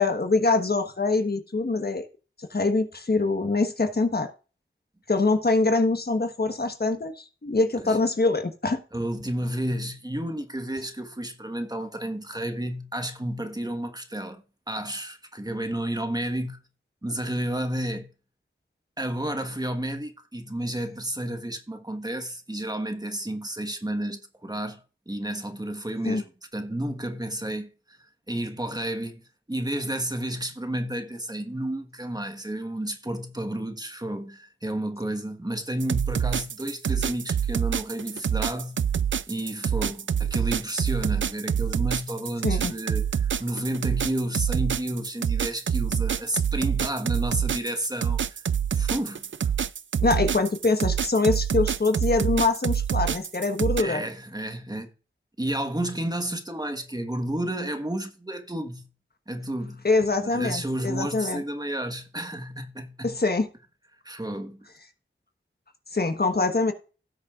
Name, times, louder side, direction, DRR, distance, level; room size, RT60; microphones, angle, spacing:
voice 1, 0.0-2.1 2.4-4.3 5.1-8.8 26.0-26.2 42.4-42.7 50.0-54.0 59.8-61.4 63.0-63.5 65.9-66.7, left 3 dB, 50° left, 1.3 m, -24 dB
voice 2, 8.9-16.6 17.0-18.1 19.0-28.0 28.3-38.9 39.3-48.4 48.7-49.2 53.8-54.9 55.4-58.9 59.3-59.9 60.2-63.2 64.0-64.7, right 1 dB, 20° right, 1.4 m, -31 dB
sound 1, 35.8-53.8, right 8 dB, 70° right, 0.4 m, -26 dB
17.0 x 6.4 x 2.5 m
wide cardioid pair, 70°, 20 cm